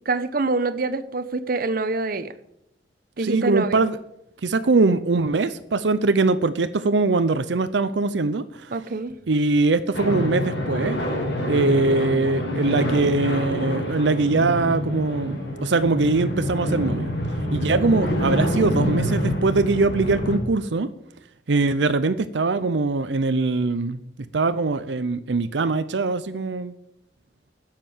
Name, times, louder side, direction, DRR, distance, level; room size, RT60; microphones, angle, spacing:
voice 1, 0.1-2.3 3.2-3.8 8.7-9.1, right 3 dB, 55° right, 11 dB, 0.9 m, -25 dB
voice 2, 3.2-4.0 4.4-8.7 9.3-11.0 11.5-17.1 17.5-20.9 21.5-24.0 24.3-26.7, right 3 dB, 85° right, 12 dB, 0.6 m, -22 dB
sound 1, 9.9-20.4, left 1 dB, 75° left, 4.3 m, -26 dB
10.0 x 7.5 x 9.3 m, 0.81 s
head